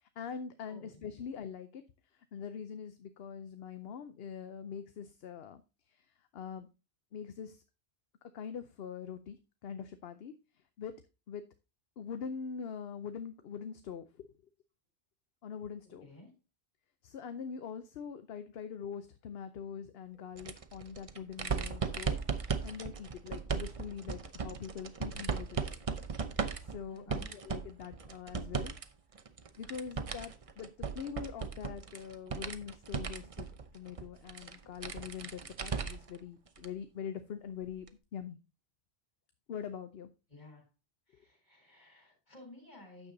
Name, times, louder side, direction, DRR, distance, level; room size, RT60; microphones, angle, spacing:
voice 1, 0.0-1.8 2.3-5.6 5.9-6.0 6.3-6.7 7.1-7.6 8.3-9.4 9.6-10.3 10.8-10.9 11.3-11.4 12.0-14.3 15.4-16.1 17.0-22.2 22.6-25.7 26.7-28.7 29.6-37.9 38.1-38.4 39.5-40.1, left 7 dB, 70° left, 10 dB, 0.9 m, -43 dB
voice 2, 0.7-1.0 15.8-16.4 26.9-27.3 40.3-40.7 41.1-43.1, left 2 dB, 45° left, 1 dB, 4.2 m, -54 dB
sound 1, 20.4-28.8 29.2-36.2 36.6-36.7 37.9-38.0, right 5 dB, 35° right, 0.7 m, -37 dB
9.4 x 6.9 x 3.9 m, 0.29 s
omnidirectional pair, 1.1 m